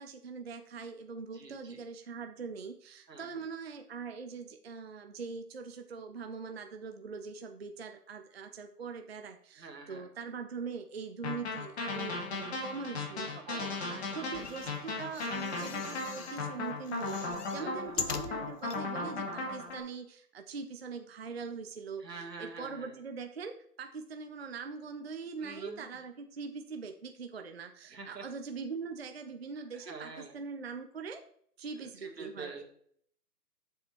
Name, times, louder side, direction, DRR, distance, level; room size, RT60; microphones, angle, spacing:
voice 1, 0.0-13.4 13.9-31.2 31.6-32.5, right 5 dB, 40° right, 6 dB, 0.5 m, -42 dB
voice 2, 1.3-1.8 3.1-3.4 9.6-10.1 13.5-14.4 17.6-17.9 22.0-23.0 25.4-26.0 27.9-28.3 29.7-30.4 32.0-32.6, right 4 dB, 80° right, 3 dB, 2.1 m, -46 dB
sound 1, 11.2-19.8, left 3 dB, 40° left, 2.3 m, -36 dB
sound 2, 14.2-16.5 16.8-18.8 19.4-19.5 19.7-19.8, left 6 dB, 70° left, 1.0 m, -42 dB
6.8 x 5.6 x 4.5 m, 0.64 s
figure-of-eight pair, 150°, 48 cm